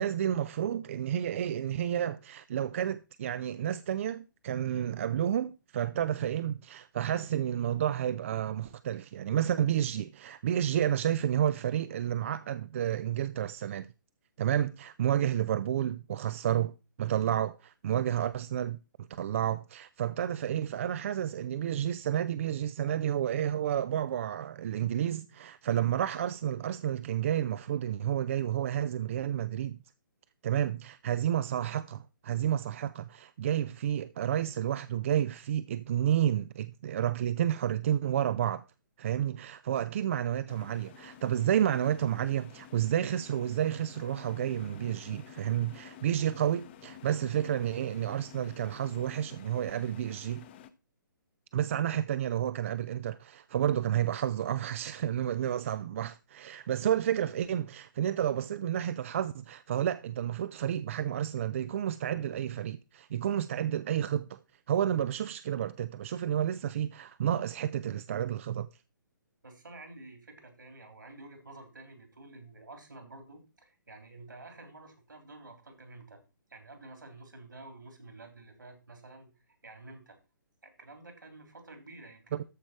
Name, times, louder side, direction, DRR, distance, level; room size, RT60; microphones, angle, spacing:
voice 1, 0.0-13.9 14.4-16.7 17.0-29.8 30.4-38.6 39.0-50.4 51.5-64.4 64.7-68.7 82.3-82.4, right 10 dB, 40° right, 0.4 m, -30 dB
sound 1, 40.5-50.7, left 10 dB, 30° left, 0.8 m, -51 dB
voice 2, 69.4-76.2 76.5-80.2 80.6-82.5, right 2 dB, 70° right, 3.4 m, -50 dB
13.5 x 5.2 x 4.4 m
figure-of-eight pair, 130°, 11 cm